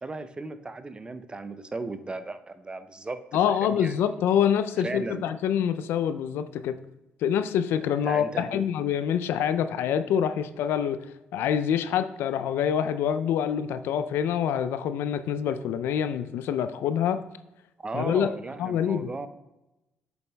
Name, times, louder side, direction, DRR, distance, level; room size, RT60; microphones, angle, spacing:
voice 1, 0.0-3.2 3.6-4.0 4.8-5.2 8.0-8.7 17.8-19.3, right 3 dB, 25° right, 10 dB, 0.5 m, -36 dB
voice 2, 3.3-6.7 7.2-11.0 11.3-17.2 17.9-18.3 18.6-19.1, left 9 dB, 75° left, 11 dB, 0.4 m, -26 dB
8.2 x 6.9 x 2.2 m, 0.97 s
supercardioid pair, 60°, 4 cm